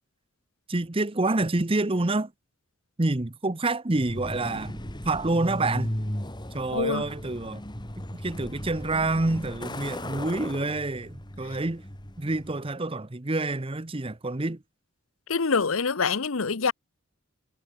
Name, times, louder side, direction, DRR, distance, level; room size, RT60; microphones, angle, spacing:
voice 1, 0.7-2.3 3.0-5.9 6.5-7.6 8.0-11.8 12.2-14.6, right 2 dB, 25° right, 0.9 m, -28 dB
Truck, 4.0-12.7, left 1 dB, 20° left, 3.0 m, -36 dB
voice 2, 6.7-7.0 15.3-16.7, left 5 dB, 75° left, 0.9 m, -25 dB
head